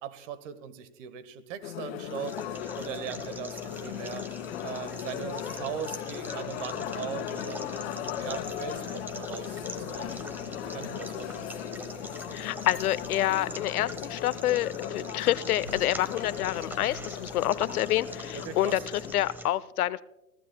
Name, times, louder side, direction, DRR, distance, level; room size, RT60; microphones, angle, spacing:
voice 1, 0.0-2.4 2.8-4.3 4.6-10.2 10.6-11.5 18.3-18.8, right 9 dB, 55° right, 14 dB, 1.4 m, -40 dB
sound 1, 1.6-19.1, left 10 dB, 45° left, 1.6 m, -38 dB
sound 2, 2.0-19.5, equal, 5° right, 0.7 m, -43 dB
sound 3, 8.2-19.3, equal, 85° right, 4.7 m, -52 dB
voice 2, 12.3-20.0, left 14 dB, 75° left, 18 dB, 0.7 m, -28 dB
28.5 x 15.0 x 2.2 m, 0.99 s
hypercardioid pair, 130°, 44 cm